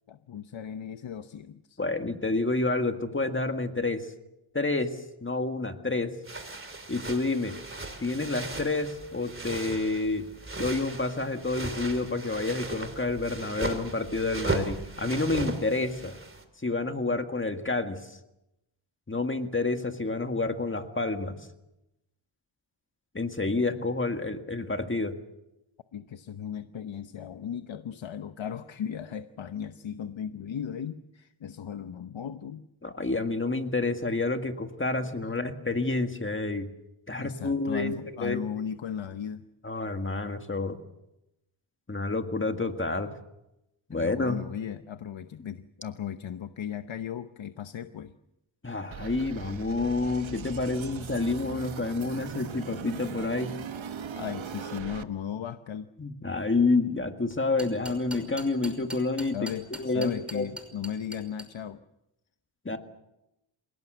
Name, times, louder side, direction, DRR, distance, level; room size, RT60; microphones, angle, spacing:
voice 1, 0.1-1.8 25.9-32.7 35.0-35.1 37.2-39.4 43.9-48.1 54.1-55.9 59.3-61.8, left 8 dB, 75° left, 10 dB, 1.0 m, -36 dB
voice 2, 1.8-4.1 4.5-6.2 6.9-7.6 8.0-10.3 10.5-16.2 16.6-18.2 19.1-21.4 23.1-25.2 32.8-36.7 37.1-38.4 39.6-40.8 41.9-43.1 43.9-44.4 48.6-53.5 56.0-59.4 59.8-60.5 62.7-62.8, left 3 dB, 25° left, 6 dB, 1.8 m, -29 dB
sound 1, 6.2-16.4, right 2 dB, 25° right, 3.1 m, -37 dB
sound 2, 48.9-55.0, right 8 dB, 75° right, 1.3 m, -39 dB
sound 3, 57.3-61.4, equal, ahead, 5.7 m, -40 dB
27.5 x 18.0 x 8.0 m, 0.90 s
wide cardioid pair, 105°, 47 cm